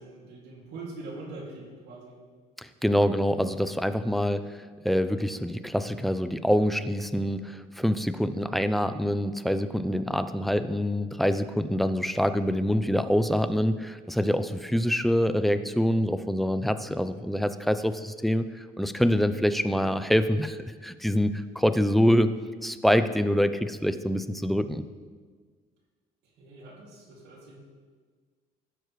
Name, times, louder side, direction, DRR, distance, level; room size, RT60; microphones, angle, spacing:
voice 1, 0.0-2.2 26.2-27.6, right 2 dB, 80° right, -2 dB, 2.4 m, -43 dB
voice 2, 2.6-22.3 22.6-24.8, equal, ahead, 11 dB, 0.4 m, -25 dB
15.5 x 6.4 x 3.1 m, 1.5 s
cardioid pair, 110°, 17 cm